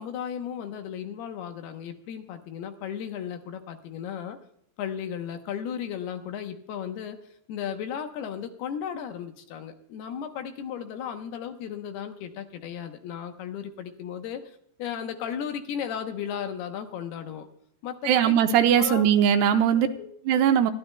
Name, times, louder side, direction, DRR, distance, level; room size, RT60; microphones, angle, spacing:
voice 1, 0.0-4.4 4.8-7.2 7.5-14.4 14.8-17.5 17.8-18.3 18.8-19.0 19.7-20.1, left 8 dB, 75° left, 6 dB, 2.9 m, -35 dB
voice 2, 18.0-19.9 20.3-20.7, right 9 dB, 80° right, 7 dB, 2.6 m, -20 dB
25.0 x 12.0 x 2.3 m, 0.68 s
omnidirectional pair, 5.0 m